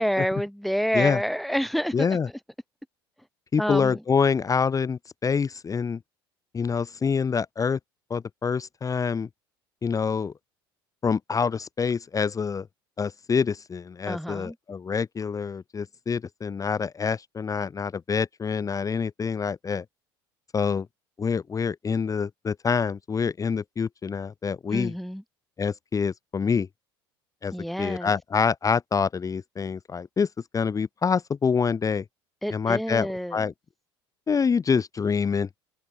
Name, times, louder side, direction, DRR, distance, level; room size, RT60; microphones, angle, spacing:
voice 1, 0.0-2.1 3.6-4.0 14.1-14.6 24.7-25.2 27.5-28.1 32.4-33.4, equal, ahead, 3.9 m, -28 dB
voice 2, 1.9-2.3 3.5-6.0 6.5-7.8 8.1-9.3 9.8-10.3 11.0-12.7 13.0-19.8 20.5-20.9 21.2-24.9 25.6-26.7 27.4-27.5 27.8-30.3 30.5-32.0 32.5-33.5 34.3-35.5, left 6 dB, 25° left, 1.1 m, -26 dB
hypercardioid pair, 70°, 13 cm